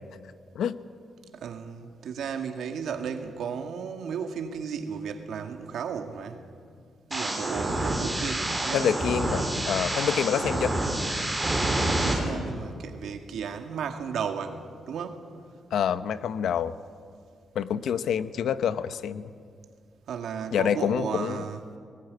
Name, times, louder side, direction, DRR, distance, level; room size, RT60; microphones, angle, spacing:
voice 1, 1.3-6.4 7.1-8.9 10.6-10.8 11.8-15.2 20.1-21.7, right 7 dB, 90° right, 5 dB, 1.9 m, -34 dB
sound 1, 7.1-12.1, right 1 dB, 5° right, 3.8 m, -28 dB
voice 2, 8.7-10.7 15.7-16.8 17.5-19.2 20.5-21.4, left 8 dB, 90° left, 13 dB, 0.9 m, -27 dB
20.0 x 19.0 x 9.6 m, 2.2 s
wide cardioid pair, 170°, 0 cm